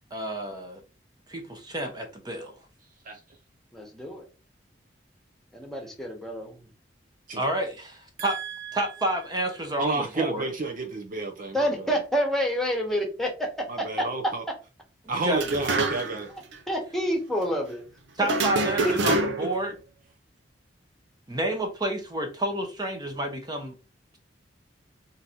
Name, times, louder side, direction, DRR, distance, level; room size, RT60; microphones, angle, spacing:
voice 1, 0.1-0.8 1.3-2.5 7.3-8.4 8.7-10.5 15.1-15.4 18.2-19.7 21.3-23.7, right 1 dB, 20° right, 0.9 m, -29 dB
voice 2, 3.7-4.2 5.5-6.6 11.5-14.5 16.7-17.8 18.2-18.5 18.8-19.1, equal, ahead, 1.2 m, -28 dB
voice 3, 8.2-8.9 9.8-12.0 13.7-14.4 15.1-16.3 19.4-19.5, right 3 dB, 50° right, 0.6 m, -31 dB
sound 1, 15.3-16.3 16.5-16.6 18.2-19.6, right 3 dB, 80° right, 0.8 m, -26 dB
3.8 x 2.7 x 4.3 m
head